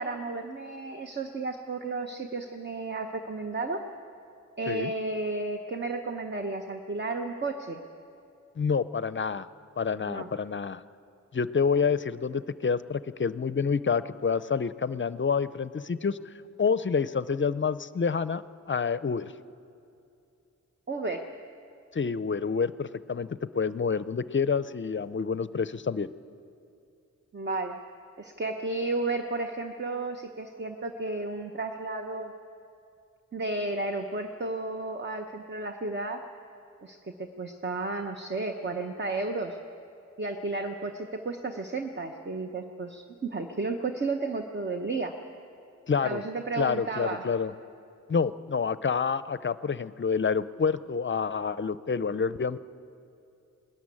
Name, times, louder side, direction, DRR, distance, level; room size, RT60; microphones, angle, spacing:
voice 1, 0.0-3.9 4.6-7.8 10.0-10.3 20.9-21.3 27.3-27.8 28.2-32.3 33.3-36.2 36.8-39.6 40.2-45.1 46.0-47.2, right 3 dB, 35° right, 4 dB, 0.9 m, -33 dB
voice 2, 8.6-9.5 9.8-10.8 11.3-16.2 16.6-19.3 21.9-26.1 45.9-46.2 46.6-47.5 48.1-52.6, left 5 dB, 40° left, 15 dB, 0.5 m, -28 dB
19.5 x 13.5 x 9.8 m, 2.6 s
wide cardioid pair, 100°, 31 cm